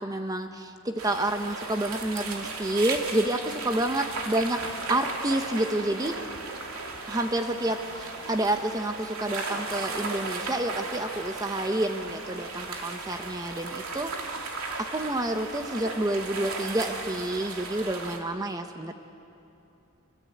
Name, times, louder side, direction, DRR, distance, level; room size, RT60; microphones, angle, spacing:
voice 1, 0.0-4.6 4.9-6.2 7.1-14.3 14.8-18.9, right 1 dB, 15° right, 6 dB, 0.9 m, -29 dB
sound 1, 1.0-18.2, right 3 dB, 80° right, 2.8 m, -36 dB
25.5 x 24.5 x 8.6 m, 2.7 s
head